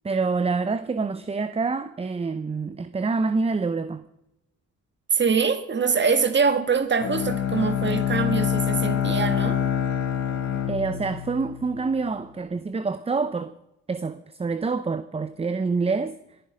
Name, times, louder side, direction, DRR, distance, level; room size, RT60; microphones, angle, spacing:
voice 1, 0.0-4.0 10.7-13.5 13.9-16.2, right 4 dB, 20° right, 0.7 m, -26 dB
voice 2, 5.1-9.6, right 5 dB, 35° right, 1.5 m, -23 dB
Bowed string instrument, 7.0-12.0, left 9 dB, 70° left, 2.8 m, -26 dB
21.5 x 10.5 x 5.1 m
cardioid pair, 90°, 30 cm